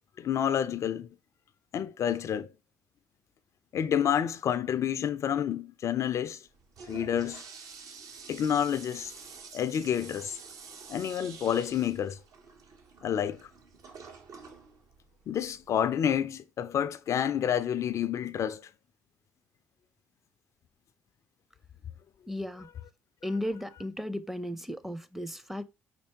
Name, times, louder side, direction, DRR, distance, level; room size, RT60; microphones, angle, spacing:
voice 1, 0.2-1.1 1.7-2.5 3.7-6.4 6.9-7.4 8.3-9.1 9.5-10.4 10.9-12.2 13.0-13.4 15.3-18.6, left 9 dB, 50° left, 0.3 m, -29 dB
Toilet flush, 6.5-15.9, right 5 dB, 60° right, 0.8 m, -49 dB
voice 2, 22.3-22.7 23.2-25.6, left 1 dB, 5° right, 0.5 m, -35 dB
4.3 x 4.3 x 2.9 m
hypercardioid pair, 50°, 7 cm